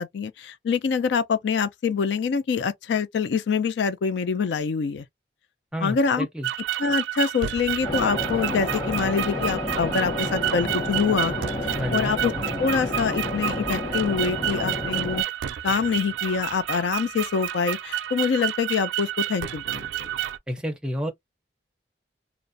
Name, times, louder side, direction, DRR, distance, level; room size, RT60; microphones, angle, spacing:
voice 1, 0.0-5.1 5.8-6.3 6.8-11.3 11.6-12.3 12.6-15.2 15.6-19.8, left 5 dB, 80° left, 0.4 m, -25 dB
voice 2, 5.7-6.5 11.8-12.1 20.5-21.1, equal, 5° right, 0.5 m, -30 dB
sound 1, 6.4-20.4, right 11 dB, 90° right, 0.3 m, -30 dB
sound 2, 7.8-15.2, left 1 dB, 20° left, 0.9 m, -30 dB
2.4 x 2.0 x 2.5 m
head